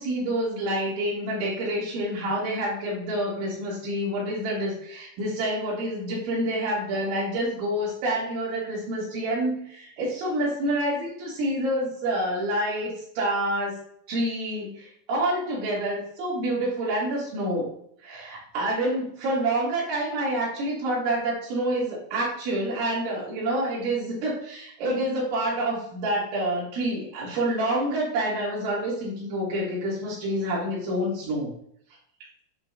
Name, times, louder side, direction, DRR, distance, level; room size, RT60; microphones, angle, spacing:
voice 1, 0.0-13.8 14.1-17.7 18.0-31.5, right 1 dB, 85° right, -6 dB, 5.4 m, -28 dB
11.5 x 4.0 x 2.8 m, 0.67 s
omnidirectional pair, 5.2 m